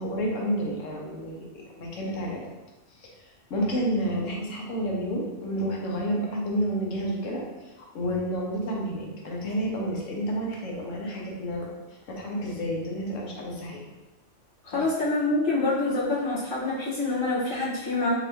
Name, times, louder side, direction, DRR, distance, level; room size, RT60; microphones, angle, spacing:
voice 1, 0.0-2.4 3.0-11.7 12.1-13.8 14.7-14.8, equal, 90° left, -2 dB, 1.3 m, -30 dB
voice 2, 14.6-18.1, left 2 dB, 45° left, -11 dB, 1.9 m, -26 dB
4.6 x 3.3 x 3.0 m, 1.1 s
omnidirectional pair, 1.3 m